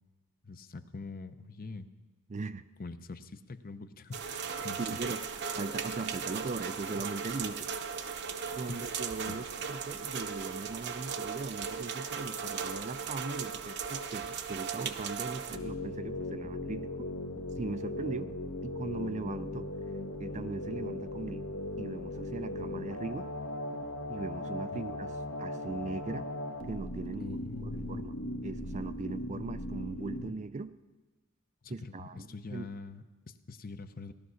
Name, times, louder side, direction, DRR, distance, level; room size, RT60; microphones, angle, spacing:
voice 1, 0.4-1.9 2.8-4.3 4.6-4.8 8.7-8.8 9.3-9.4 24.7-24.8 27.2-28.0 31.6-34.1, left 3 dB, 40° left, 10 dB, 0.7 m, -44 dB
voice 2, 2.3-2.6 4.8-5.3 5.6-7.7 8.5-17.1 17.6-18.3 18.6-19.7 20.2-23.3 24.1-26.3 26.7-30.7 31.7-32.7, right 3 dB, 35° right, 12 dB, 0.4 m, -39 dB
sound 1, 4.1-15.6, right 6 dB, 50° right, 0.8 m, -37 dB
sound 2, 15.5-30.3, left 1 dB, 65° left, 1.2 m, -38 dB
17.0 x 12.0 x 6.3 m, 1.2 s
head